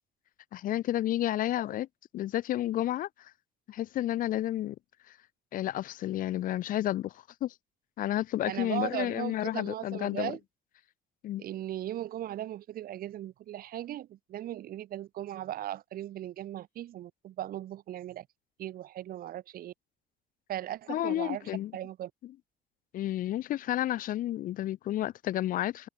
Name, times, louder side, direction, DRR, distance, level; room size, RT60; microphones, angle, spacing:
voice 1, 0.5-1.9 2.1-3.3 3.7-4.8 5.5-7.5 8.0-10.3 11.2-11.4 20.9-21.7 22.9-25.9, left 13 dB, 55° left, 0.5 m, -31 dB
voice 2, 8.4-10.4 11.4-18.3 18.6-19.7 20.5-22.1, right 13 dB, 60° right, 1.0 m, -38 dB
cardioid pair, 110°, 17 cm